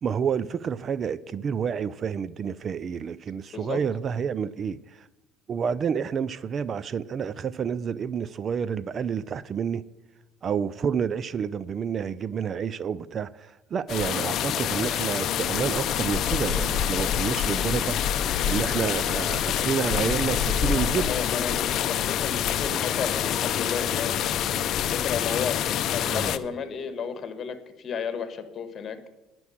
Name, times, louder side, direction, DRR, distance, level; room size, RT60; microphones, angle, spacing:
voice 1, 0.0-5.1 5.5-9.8 10.4-21.1 22.7-22.9 26.1-26.3, right 7 dB, 40° right, 0.4 m, -29 dB
voice 2, 3.5-3.8 20.7-24.1 24.9-25.6 25.9-29.0, left 6 dB, 40° left, 1.5 m, -33 dB
sound 1, 13.9-26.4, left 10 dB, 55° left, 0.6 m, -26 dB
10.5 x 6.1 x 8.5 m
supercardioid pair, 95°, 0 cm